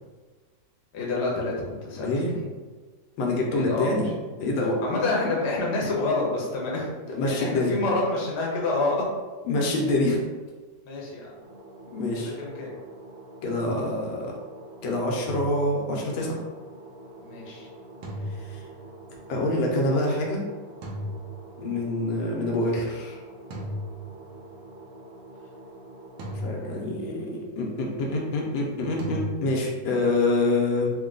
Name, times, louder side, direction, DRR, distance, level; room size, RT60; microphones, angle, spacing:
voice 1, 0.9-2.4 3.5-4.0 4.8-6.9 7.3-9.0 10.8-11.4 12.2-12.7 17.2-17.7, left 2 dB, 45° left, -3 dB, 0.9 m, -28 dB
voice 2, 2.0-2.3 3.2-4.1 4.4-4.8 7.1-7.8 9.4-10.2 11.9-12.4 13.4-14.3 14.8-16.4 18.3-18.6 19.3-20.4 21.6-23.2 26.4-30.9, left 2 dB, 90° left, -1 dB, 1.6 m, -26 dB
sound 1, 11.4-26.8, right 1 dB, 65° right, 1.7 m, -46 dB
sound 2, 15.3-16.3 18.0-19.2 20.8-22.0 23.5-24.7 26.2-27.3 29.0-29.9, equal, 90° right, 1.5 m, -37 dB
3.9 x 2.3 x 3.7 m, 1.3 s
omnidirectional pair, 2.1 m